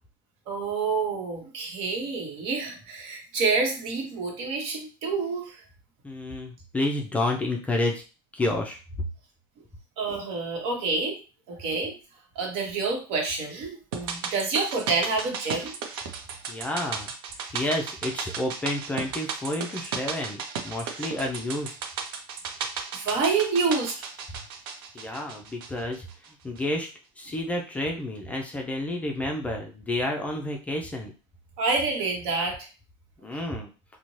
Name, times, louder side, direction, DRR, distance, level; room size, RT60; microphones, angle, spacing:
voice 1, 0.5-5.6 10.0-11.2 11.5-11.9 12.3-15.7 23.0-24.0 31.6-32.7, right 4 dB, 60° right, 1 dB, 1.0 m, -28 dB
voice 2, 6.0-8.0 8.3-8.8 16.5-17.1 17.5-21.8 24.9-26.0 26.4-26.9 27.2-31.1 33.2-33.7, left 1 dB, 10° left, 1 dB, 0.4 m, -30 dB
sound 1, 13.9-26.3 26.6-26.7, right 6 dB, 85° right, 0.5 m, -35 dB
2.6 x 2.1 x 3.0 m, 0.33 s
supercardioid pair, 140°, 12 cm